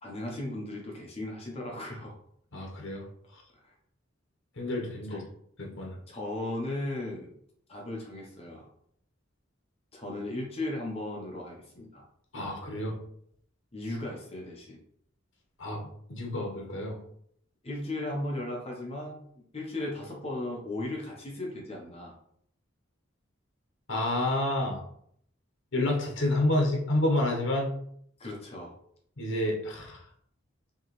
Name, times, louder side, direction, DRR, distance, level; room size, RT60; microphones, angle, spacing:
voice 1, 0.0-2.1 3.5-3.7 5.1-5.2 6.1-7.3 7.7-8.7 9.9-12.0 13.7-14.8 17.6-22.1 28.2-28.7, left 1 dB, 30° left, -1 dB, 0.8 m, -36 dB
voice 2, 2.5-3.0 4.6-5.2 5.6-6.0 12.3-13.0 15.6-15.8 16.1-17.0 23.9-24.8 25.7-27.7 29.2-30.0, left 1 dB, 70° left, 0 dB, 1.0 m, -29 dB
4.6 x 2.9 x 3.1 m, 0.68 s
head